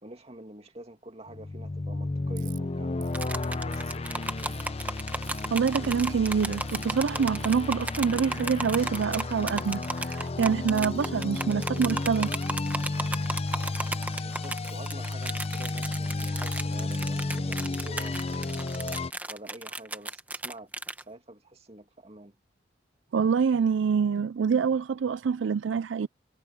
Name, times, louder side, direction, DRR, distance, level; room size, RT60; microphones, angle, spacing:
voice 1, 0.0-4.7 14.2-18.3 19.3-22.4, right 1 dB, 35° right, 2.3 m, -47 dB
sound 1, 1.3-19.1, left 2 dB, 35° left, 0.6 m, -32 dB
Ratchet pawl, 2.4-2.6 3.0-3.3 3.7-4.7 5.2-5.5 5.9-6.2 6.6-6.9 7.4-7.7 8.3-8.8 9.5-10.2 10.8-11.5 12.1-12.8 13.5-13.9 14.7-14.9 15.6-17.1, right 15 dB, 65° right, 4.4 m, -52 dB
sound 2, 3.1-21.0, right 2 dB, 10° right, 1.4 m, -35 dB
voice 2, 5.5-12.3 23.1-26.1, right 6 dB, 85° right, 0.4 m, -26 dB
head